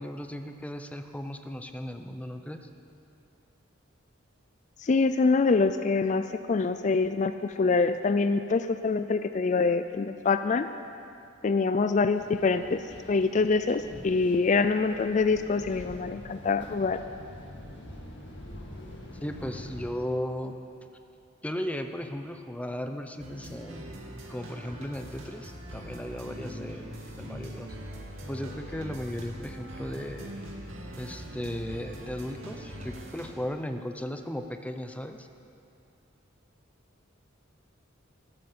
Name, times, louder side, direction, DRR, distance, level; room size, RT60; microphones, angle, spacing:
voice 1, 0.0-2.7 19.2-20.6 21.4-27.7 28.2-30.3 31.0-35.3, equal, 5° left, 6 dB, 0.7 m, -36 dB
voice 2, 4.8-10.7 11.4-12.8 13.1-17.0, left 4 dB, 35° left, 11 dB, 0.4 m, -25 dB
sound 1, 12.1-19.9, left 1 dB, 60° left, 2.3 m, -45 dB
sound 2, 23.2-33.3, equal, 80° right, 2.6 m, -42 dB
13.5 x 13.5 x 6.8 m, 2.6 s
head